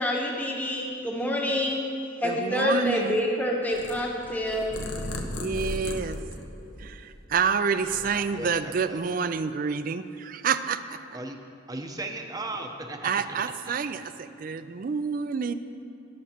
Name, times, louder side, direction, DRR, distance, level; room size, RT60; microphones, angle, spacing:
voice 1, 0.0-1.8 2.2-4.7, left 1 dB, 10° left, -3 dB, 1.2 m, -27 dB
voice 2, 2.2-3.2 5.4-6.2 6.8-11.0 13.0-15.5, right 6 dB, 45° right, 12 dB, 0.4 m, -28 dB
Purr, 3.7-7.3 7.7-8.7, left 1 dB, 60° left, 0.9 m, -36 dB
voice 3, 8.1-9.0 11.1-11.4 11.7-13.5, right 2 dB, 20° right, 3 dB, 0.8 m, -37 dB
18.5 x 8.6 x 2.9 m, 2.5 s
head